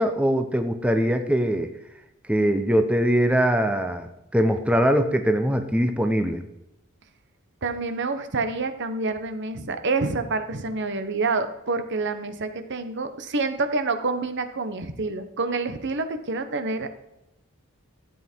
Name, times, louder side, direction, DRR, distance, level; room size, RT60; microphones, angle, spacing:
voice 1, 0.0-1.7 2.3-6.4, equal, 5° right, 7 dB, 0.8 m, -22 dB
voice 2, 7.6-16.9, right 3 dB, 60° right, 9 dB, 1.2 m, -27 dB
13.5 x 8.4 x 4.6 m, 0.90 s
head